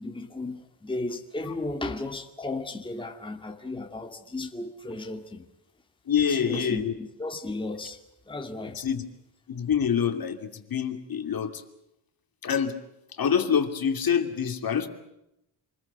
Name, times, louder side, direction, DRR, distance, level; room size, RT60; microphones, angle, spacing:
voice 1, 0.0-5.5 6.3-8.0 8.3-8.8, left 2 dB, 10° left, 2.1 m, -35 dB
voice 2, 6.1-6.9 8.8-9.0 9.5-11.5 12.4-12.8 13.2-14.9, left 7 dB, 50° left, 2.8 m, -26 dB
28.0 x 21.0 x 8.2 m
cardioid pair, 130°, 46 cm